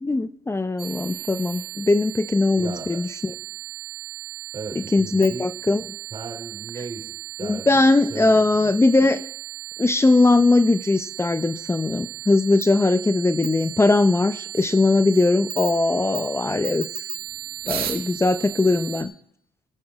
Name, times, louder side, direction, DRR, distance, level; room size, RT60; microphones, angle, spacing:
voice 1, 0.0-3.3 4.8-5.8 7.4-9.2 9.8-16.9 17.7-19.1, left 2 dB, 15° left, 12 dB, 0.8 m, -20 dB
sound 1, 0.8-19.0, right 13 dB, 65° right, 1.9 m, -35 dB
voice 2, 2.5-3.0 4.5-5.5 6.1-7.1 7.4-8.7 18.6-18.8, right 4 dB, 35° right, 1 dB, 4.5 m, -37 dB
21.5 x 8.6 x 4.8 m, 0.72 s
supercardioid pair, 70°, 17 cm